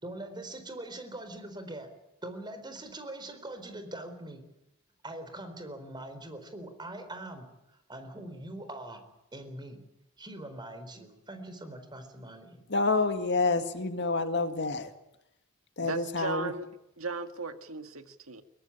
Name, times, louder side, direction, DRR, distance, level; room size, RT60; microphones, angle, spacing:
voice 1, 0.0-1.9 2.2-4.4 5.0-9.0 9.3-9.8 10.2-12.6, right 1 dB, 20° right, 8 dB, 4.3 m, -42 dB
voice 2, 12.7-14.9 15.8-16.5, left 3 dB, 55° left, 8 dB, 2.0 m, -28 dB
voice 3, 15.8-16.7 17.0-18.4, right 4 dB, 90° right, 8 dB, 1.8 m, -36 dB
22.0 x 19.0 x 9.9 m, 0.88 s
head